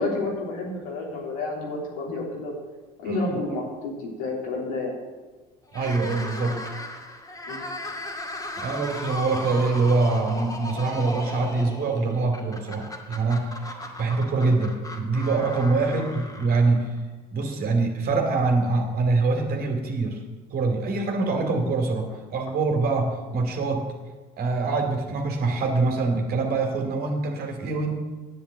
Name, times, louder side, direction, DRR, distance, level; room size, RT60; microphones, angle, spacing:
voice 1, 0.0-2.6 3.0-5.0 7.5-7.6 15.9-16.1, left 3 dB, 85° left, -2 dB, 3.6 m, -30 dB
voice 2, 3.0-3.4 5.7-6.6 8.6-13.6 14.0-16.9 17.3-20.2 20.5-23.9 24.4-27.9, right 3 dB, 55° right, 3 dB, 2.6 m, -24 dB
sound 1, 5.7-17.0, left 1 dB, 20° left, 2.3 m, -36 dB
9.8 x 8.3 x 7.8 m, 1.3 s
supercardioid pair, 80°, 18 cm